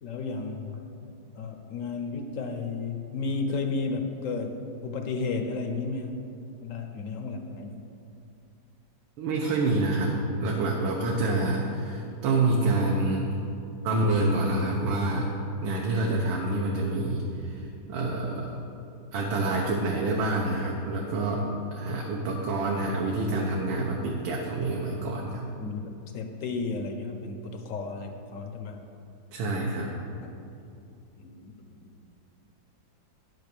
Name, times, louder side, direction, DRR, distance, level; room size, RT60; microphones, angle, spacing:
voice 1, 0.0-6.2 6.6-7.9 25.6-28.8 30.2-30.4 31.2-32.0, left 4 dB, 60° left, 5 dB, 0.8 m, -33 dB
voice 2, 9.2-13.2 13.8-15.3 15.6-18.6 19.1-25.4 29.3-29.9, right 2 dB, 75° right, -1 dB, 1.7 m, -27 dB
10.5 x 6.3 x 6.8 m, 2.6 s
omnidirectional pair, 2.2 m